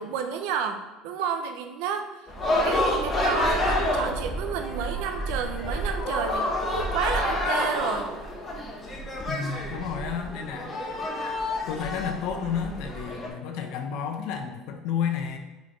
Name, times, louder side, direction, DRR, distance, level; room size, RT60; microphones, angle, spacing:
voice 1, 0.0-2.3 2.6-8.1, right 7 dB, 75° right, 6 dB, 0.8 m, -31 dB
sound 1, 2.3-13.3, left 1 dB, 20° left, 1.2 m, -28 dB
voice 2, 9.3-10.8 11.7-15.4, left 7 dB, 65° left, 5 dB, 0.9 m, -31 dB
4.9 x 4.6 x 4.8 m, 1.1 s
cardioid pair, 155°, 0 cm